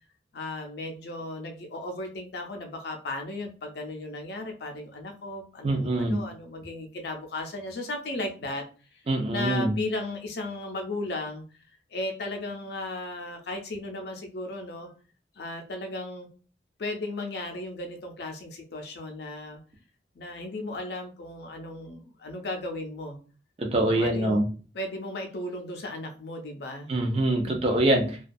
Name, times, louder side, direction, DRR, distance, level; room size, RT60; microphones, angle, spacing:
voice 1, 0.3-8.6 8.9-9.0 9.3-11.4 11.9-14.9 15.4-16.3 16.8-19.6 20.1-23.2 23.9-24.4 24.7-26.9, left 2 dB, 60° left, 3 dB, 0.5 m, -35 dB
voice 2, 5.6-6.2 9.1-9.7 23.6-24.5 26.9-28.2, right 1 dB, 35° right, 3 dB, 0.4 m, -24 dB
2.2 x 2.2 x 2.5 m, 0.37 s
head